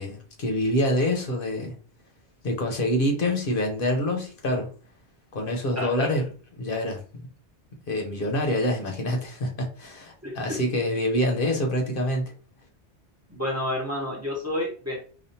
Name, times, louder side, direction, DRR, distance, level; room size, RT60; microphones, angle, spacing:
voice 1, 0.0-1.7 2.4-4.7 5.3-6.2 6.6-7.3 7.9-12.3, left 1 dB, 55° left, 1.0 m, -26 dB
voice 2, 5.8-6.1 10.2-10.6 13.3-15.0, left 1 dB, 15° right, 0.8 m, -30 dB
5.1 x 2.4 x 2.8 m
omnidirectional pair, 1.2 m